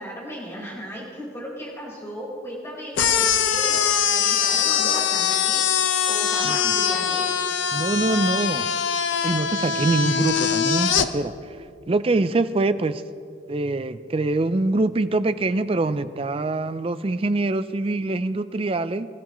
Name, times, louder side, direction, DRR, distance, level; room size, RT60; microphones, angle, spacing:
voice 1, 0.0-5.6 6.0-7.3, equal, 15° left, -6 dB, 4.3 m, -36 dB
Balloon Expels Air, 3.0-11.1, left 8 dB, 70° left, 0.6 m, -22 dB
voice 2, 7.7-8.7 9.2-11.6 11.9-13.0 13.5-19.1, right 2 dB, 30° right, 13 dB, 0.4 m, -24 dB
24.5 x 13.5 x 3.1 m, 2.4 s
head